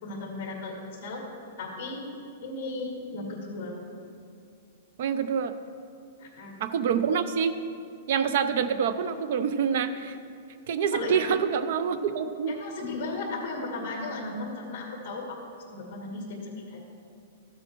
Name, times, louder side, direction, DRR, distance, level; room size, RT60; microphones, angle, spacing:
voice 1, 0.0-1.2 1.6-2.0 2.4-3.8 6.2-6.6 10.9-11.3 12.5-15.4 15.7-16.8, left 3 dB, 35° left, -1 dB, 2.3 m, -35 dB
voice 2, 5.0-5.5 6.6-7.5 8.1-10.1 10.7-12.5, right 7 dB, 45° right, 11 dB, 0.5 m, -26 dB
14.0 x 8.4 x 3.0 m, 2.4 s
supercardioid pair, 175°, 0 cm